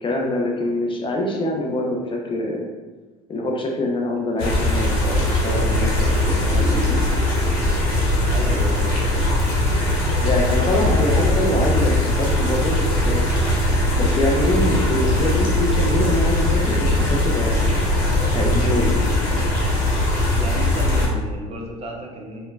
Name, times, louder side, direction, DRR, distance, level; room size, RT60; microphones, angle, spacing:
voice 1, 0.0-2.7 3.3-7.0 10.2-13.2 13.6-13.7 14.0-17.7 18.3-19.5, left 1 dB, 30° left, 0 dB, 0.4 m, -25 dB
sound 1, 4.4-21.1, left 1 dB, 55° left, 0.9 m, -20 dB
voice 2, 8.3-9.4 10.5-10.8 20.4-22.5, right 1 dB, 35° right, 0 dB, 0.6 m, -32 dB
3.0 x 2.1 x 2.3 m, 1.2 s
hypercardioid pair, 70°, 19 cm